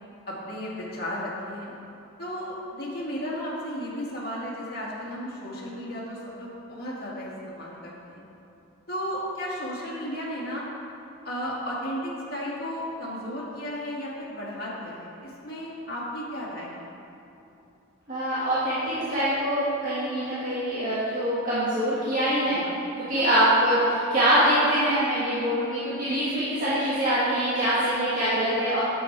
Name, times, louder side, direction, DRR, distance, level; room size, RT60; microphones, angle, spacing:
voice 1, 0.3-1.7 2.2-8.2 8.9-10.6 11.2-16.9 22.4-22.8 23.1-23.3, equal, 45° left, -6 dB, 2.2 m, -34 dB
voice 2, 18.1-22.6 23.0-28.8, right 1 dB, 40° right, -11 dB, 1.8 m, -24 dB
9.0 x 7.4 x 4.7 m, 2.8 s
head